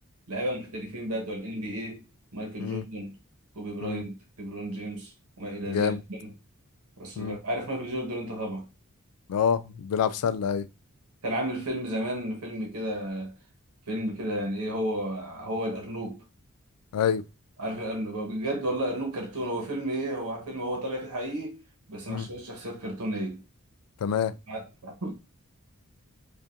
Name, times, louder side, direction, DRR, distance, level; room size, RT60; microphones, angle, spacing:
voice 1, 0.3-2.0 2.3-3.2 3.5-6.3 7.0-8.6 11.2-13.3 13.9-16.2 17.6-21.6 21.9-23.4 24.5-25.1, right 1 dB, 85° right, 1.2 m, -33 dB
voice 2, 5.7-6.0 7.2-7.4 9.3-10.7 16.9-17.2 22.1-22.3 24.0-24.3, left 7 dB, 85° left, 0.3 m, -27 dB
4.9 x 2.5 x 2.6 m
head